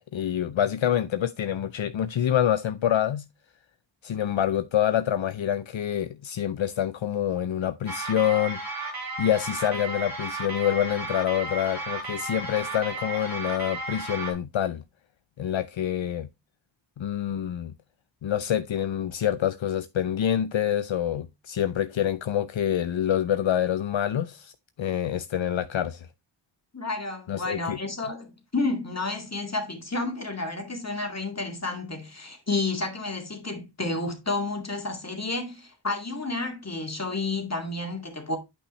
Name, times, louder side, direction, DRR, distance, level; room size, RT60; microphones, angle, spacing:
voice 1, 0.0-3.2 4.0-8.6 9.2-14.8 15.4-16.3 17.0-17.7 18.2-24.5 24.8-26.1 27.3-27.8, left 10 dB, 75° left, 0.5 m, -26 dB
sound 1, 7.9-14.3, right 2 dB, 50° right, 2.6 m, -34 dB
voice 2, 26.7-38.4, left 3 dB, 35° left, 2.1 m, -31 dB
8.7 x 5.6 x 3.1 m
wide cardioid pair, 60°, 47 cm